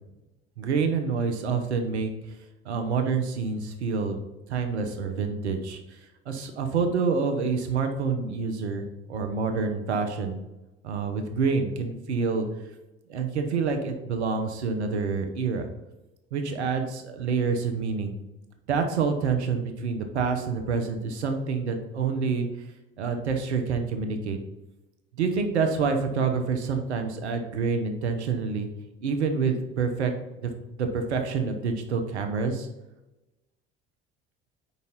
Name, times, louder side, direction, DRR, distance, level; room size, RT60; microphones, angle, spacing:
voice 1, 0.6-2.1 2.6-4.2 4.5-5.8 6.3-10.4 10.8-12.5 13.1-15.7 16.3-18.1 18.7-22.5 23.0-24.4 25.2-28.7 29.0-30.1 30.4-30.5 30.8-32.7, right 5 dB, 90° right, 6 dB, 0.8 m, -27 dB
4.9 x 4.1 x 5.5 m, 1.0 s
hypercardioid pair, 55°, 33 cm